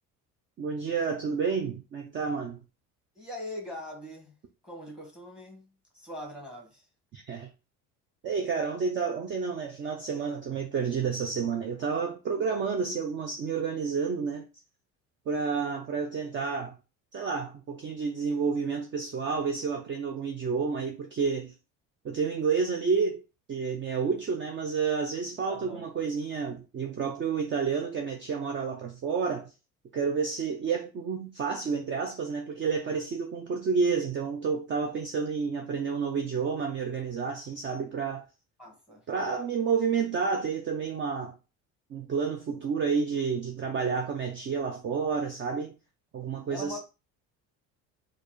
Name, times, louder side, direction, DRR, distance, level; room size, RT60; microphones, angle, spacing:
voice 1, 0.6-2.6 7.1-7.5 8.2-14.4 15.3-16.7 17.1-21.5 22.0-23.2 23.5-29.5 29.9-38.2 39.1-41.3 41.9-45.7 46.1-46.8, right 5 dB, 35° right, 0.5 m, -30 dB
voice 2, 3.1-4.3 4.6-5.6 5.9-6.8 25.5-25.8 38.6-39.0 46.5-46.8, left 1 dB, ahead, 1.4 m, -41 dB
4.4 x 2.5 x 3.1 m
cardioid pair, 135°, 34 cm